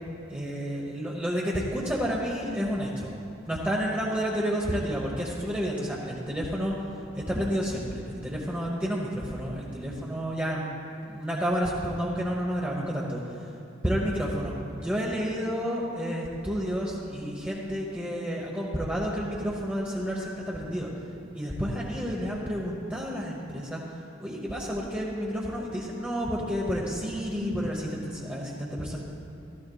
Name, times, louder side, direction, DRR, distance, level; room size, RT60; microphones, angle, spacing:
voice 1, 0.3-3.1 3.5-6.7 7.1-10.7 11.0-13.2 13.8-20.9 21.3-23.8 24.2-29.0, equal, 5° right, -4 dB, 0.9 m, -30 dB
14.5 x 14.0 x 2.3 m, 2.7 s
head